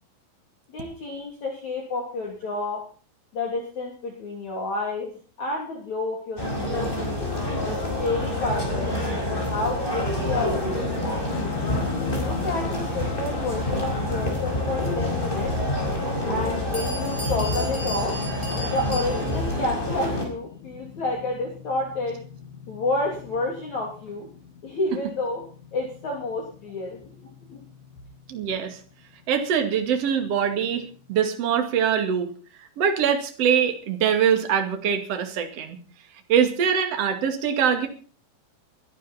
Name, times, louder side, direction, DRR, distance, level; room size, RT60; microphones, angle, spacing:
voice 1, 0.7-2.8 3.3-5.1 5.4-6.9 7.6-9.0 9.5-11.2 12.1-15.5 16.3-18.2 18.7-22.2 22.7-24.3 24.6-25.4 25.7-27.6, left 2 dB, 45° left, 0 dB, 4.0 m, -30 dB
sound 1, 6.4-20.3, left 1 dB, 10° left, 4.6 m, -27 dB
sound 2, 11.3-31.2, left 8 dB, 75° left, 3.9 m, -40 dB
Bell, 16.4-16.5 16.7-19.5, equal, 10° right, 5.0 m, -36 dB
voice 2, 28.3-28.8 29.3-32.3 32.8-35.8 36.3-37.9, right 8 dB, 40° right, 6 dB, 2.6 m, -23 dB
22.5 x 12.0 x 4.3 m, 0.40 s
omnidirectional pair, 5.2 m